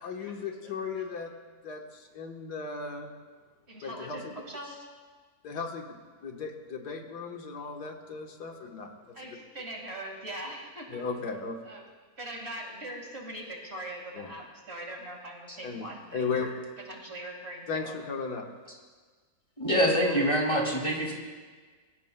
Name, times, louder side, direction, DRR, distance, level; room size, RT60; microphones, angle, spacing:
voice 1, 0.0-1.3 1.6-3.1 3.8-4.3 5.4-6.0 6.2-8.9 10.9-11.6 14.2-14.3 15.6-16.5 17.7-18.5, left 5 dB, 90° left, 2 dB, 1.9 m, -36 dB
voice 2, 3.7-4.9 9.1-11.0 11.7-11.9 12.2-16.5 16.9-18.0 20.0-20.5, right 1 dB, 40° right, 0 dB, 2.2 m, -41 dB
voice 3, 19.6-21.1, equal, 20° left, -1 dB, 2.4 m, -25 dB
23.0 x 15.0 x 2.2 m, 1.4 s
omnidirectional pair, 1.7 m